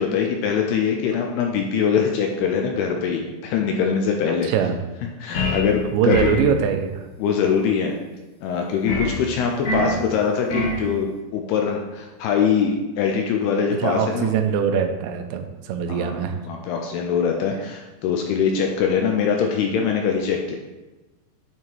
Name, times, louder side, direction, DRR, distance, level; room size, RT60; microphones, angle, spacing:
voice 1, 0.0-4.5 5.2-6.3 7.2-8.0 8.4-14.3 15.9-16.2 16.5-20.6, left 6 dB, 80° left, 2 dB, 2.4 m, -23 dB
voice 2, 4.3-4.8 5.9-7.1 13.7-16.4, right 8 dB, 85° right, 6 dB, 2.9 m, -22 dB
sound 1, 5.3-5.7 6.1-6.5 8.9-9.2 9.6-10.0 10.5-10.8, left 1 dB, 55° left, 1.9 m, -24 dB
9.0 x 3.7 x 4.5 m, 1.1 s
omnidirectional pair, 5.1 m